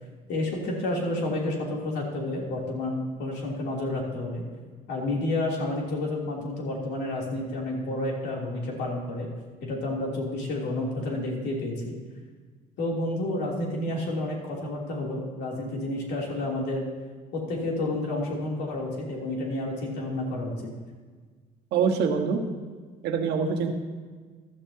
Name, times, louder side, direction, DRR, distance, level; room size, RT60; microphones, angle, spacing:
voice 1, 0.3-4.4 4.9-9.3 9.6-11.9 12.8-16.8 17.3-20.7, left 2 dB, 80° left, -2 dB, 3.1 m, -30 dB
voice 2, 21.7-22.4 23.0-23.7, right 6 dB, 80° right, 2 dB, 1.4 m, -24 dB
15.0 x 12.0 x 2.8 m, 1.5 s
cardioid pair, 110°, 17 cm